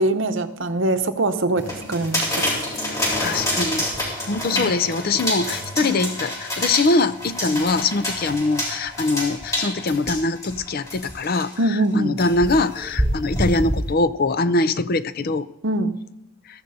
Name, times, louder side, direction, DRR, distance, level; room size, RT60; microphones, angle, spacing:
voice 1, 0.0-2.4 4.5-4.9 5.8-6.0 7.5-7.6 11.6-12.1 15.6-15.9, right 1 dB, 55° right, 9 dB, 0.8 m, -23 dB
sound 1, 1.6-11.5 12.2-13.9, left 1 dB, 15° left, 3.8 m, -27 dB
voice 2, 3.2-3.8 4.3-11.5 12.0-15.5, left 3 dB, 45° left, 14 dB, 0.4 m, -22 dB
21.5 x 14.0 x 2.7 m, 0.92 s
head